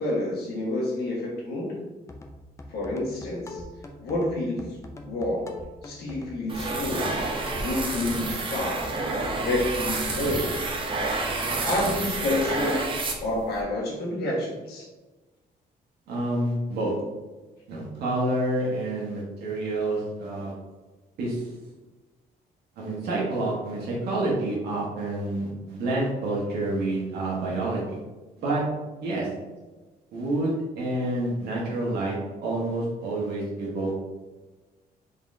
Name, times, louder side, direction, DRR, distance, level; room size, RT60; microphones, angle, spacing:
voice 1, 0.0-1.8 2.7-3.6 4.0-4.7 5.0-5.5 5.8-7.2 7.5-9.0 9.4-10.6 11.6-12.9 13.2-14.9, left 1 dB, 80° left, -4 dB, 1.5 m, -28 dB
sound 1, 2.1-10.3, left 2 dB, 20° left, 0.4 m, -43 dB
sound 2, 6.5-13.6, right 3 dB, 30° right, 0.6 m, -29 dB
voice 2, 16.1-16.9 17.7-20.5 21.2-21.5 22.8-28.0 28.4-28.6 29.0-29.3 30.1-34.0, right 2 dB, 85° right, -5 dB, 1.2 m, -28 dB
4.0 x 3.8 x 2.6 m, 1.2 s
cardioid pair, 150°, 16 cm